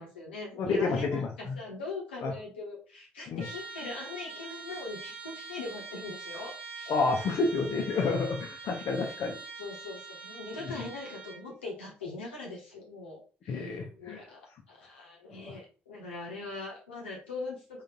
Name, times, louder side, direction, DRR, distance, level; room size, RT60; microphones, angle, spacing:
voice 1, 0.0-6.9 9.6-14.4 14.7-17.6, left 3 dB, 85° left, -2 dB, 0.9 m, -41 dB
voice 2, 0.6-1.5 2.2-2.3 3.3-3.4 6.9-9.4 10.6-10.8 13.5-14.2 15.3-15.5, left 4 dB, 55° left, 1 dB, 0.6 m, -30 dB
Trumpet, 3.4-11.5, right 4 dB, 85° right, 0.5 m, -44 dB
3.9 x 2.5 x 3.6 m, 0.38 s
figure-of-eight pair, 45°, 6 cm